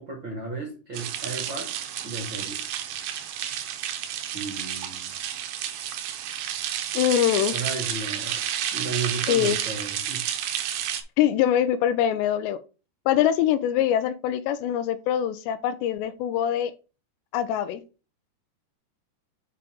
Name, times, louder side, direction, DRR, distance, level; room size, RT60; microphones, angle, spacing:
voice 1, 0.0-1.7 2.0-2.6 4.3-5.1 7.5-8.4 8.7-10.3, right 4 dB, 50° right, 1.5 m, -34 dB
sound 1, 0.9-11.0, right 10 dB, 75° right, 2.4 m, -31 dB
voice 2, 6.9-7.6 9.3-9.6 11.2-12.6 13.1-16.7 17.3-17.8, left 10 dB, 80° left, 2.8 m, -23 dB
8.3 x 4.9 x 3.6 m
omnidirectional pair, 5.0 m